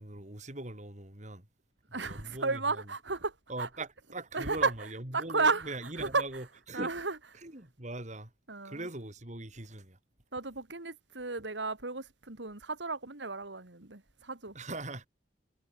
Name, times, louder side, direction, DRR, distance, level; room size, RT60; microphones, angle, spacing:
voice 1, 0.0-1.5 1.9-2.8 3.5-6.9 7.4-8.3 8.6-10.0 14.6-15.1, right 2 dB, 40° right, 3.6 m, -41 dB
voice 2, 1.9-3.7 4.3-4.7 5.1-6.4 6.7-7.2 8.5-8.9 10.3-14.6, right 4 dB, 90° right, 2.9 m, -33 dB
head